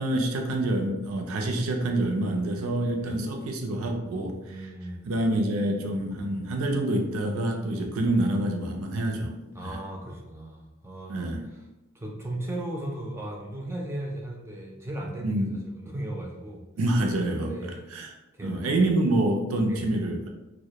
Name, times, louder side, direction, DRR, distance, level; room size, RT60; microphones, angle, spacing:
voice 1, 0.0-4.7 5.0-9.4 9.6-9.8 11.1-11.4 15.2-15.5 16.8-17.5 17.9-18.1 18.4-20.3, right 1 dB, 85° right, 3 dB, 0.4 m, -27 dB
voice 2, 4.4-5.1 9.5-11.3 11.9-16.6 17.3-17.8 18.3-18.9 19.7-19.9, right 1 dB, 10° right, 0 dB, 0.3 m, -36 dB
2.1 x 2.0 x 2.8 m, 1.0 s
head